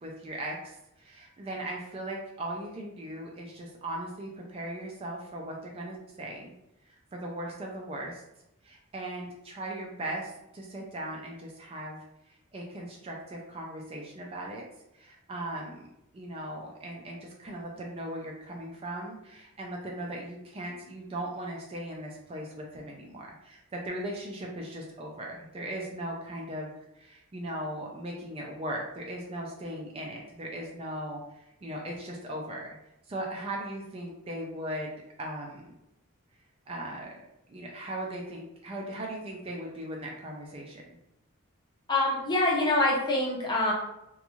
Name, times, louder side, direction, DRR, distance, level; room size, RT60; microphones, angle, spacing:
voice 1, 0.0-6.5 6.9-8.2 8.6-12.0 12.3-14.6 15.0-15.9 16.1-32.7 33.1-34.9 35.2-35.7 36.7-37.2 37.5-41.0, right 1 dB, 25° right, -1 dB, 0.3 m, -38 dB
voice 2, 41.9-43.7, left 2 dB, 20° left, -3 dB, 0.6 m, -25 dB
2.5 x 2.3 x 2.9 m, 0.85 s
head